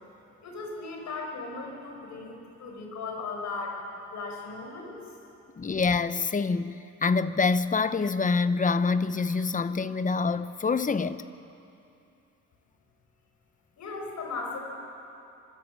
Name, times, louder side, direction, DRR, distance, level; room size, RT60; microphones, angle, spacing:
voice 1, 0.4-3.8 4.1-4.9 13.8-14.6, left 3 dB, 70° left, 5.3 m, -37 dB
voice 2, 5.6-11.2, left 4 dB, 25° left, 0.8 m, -26 dB
26.0 x 13.5 x 8.3 m
cardioid pair, 90°, 30 cm